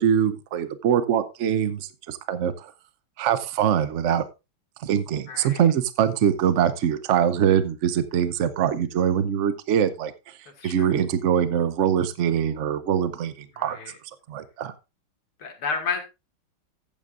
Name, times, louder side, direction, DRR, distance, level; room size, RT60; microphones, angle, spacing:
voice 1, 0.0-2.7 3.2-4.2 4.8-10.4 10.6-13.8 14.3-14.7, right 8 dB, 85° right, 13 dB, 0.6 m, -23 dB
voice 2, 5.3-5.6 10.6-10.9 13.7-13.9 15.4-16.0, left 5 dB, 85° left, 4 dB, 3.0 m, -30 dB
14.0 x 8.8 x 2.5 m, 0.25 s
omnidirectional pair, 2.3 m